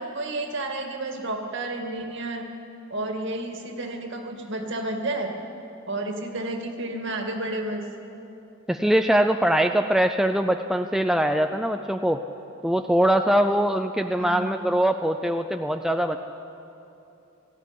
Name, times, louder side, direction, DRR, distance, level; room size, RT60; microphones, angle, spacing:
voice 1, 0.0-2.4 2.9-5.3 5.9-7.8 14.2-14.5, right 2 dB, 55° right, 3 dB, 2.2 m, -31 dB
voice 2, 8.7-12.2 12.6-16.2, right 1 dB, ahead, 6 dB, 0.4 m, -22 dB
18.5 x 15.0 x 10.0 m, 2.9 s
head